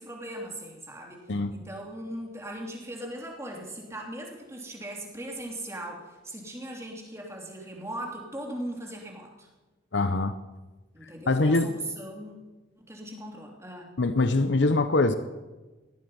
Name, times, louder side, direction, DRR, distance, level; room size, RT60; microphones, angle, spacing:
voice 1, 0.0-9.5 10.9-12.4 12.8-13.9, right 1 dB, 15° right, 0 dB, 2.8 m, -39 dB
voice 2, 9.9-10.3 11.3-11.7 14.0-15.2, left 2 dB, 65° left, 11 dB, 0.7 m, -23 dB
18.0 x 12.5 x 5.5 m, 1.2 s
head